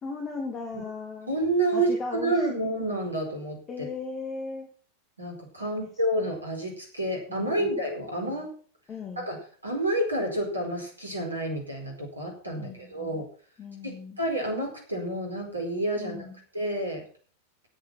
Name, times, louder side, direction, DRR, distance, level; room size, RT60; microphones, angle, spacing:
voice 1, 0.0-1.3 1.7-2.7 3.7-4.7 7.4-7.7 8.2-8.5 8.9-9.3 12.5-13.2 13.6-14.2 16.0-16.4, left 4 dB, 25° left, 3 dB, 2.4 m, -37 dB
voice 2, 1.3-3.9 5.2-8.5 9.2-9.4 9.6-13.3 13.8-16.3 16.5-17.0, right 1 dB, 80° right, 2 dB, 4.6 m, -29 dB
13.5 x 8.8 x 6.1 m, 0.43 s
figure-of-eight pair, 90°, 0 cm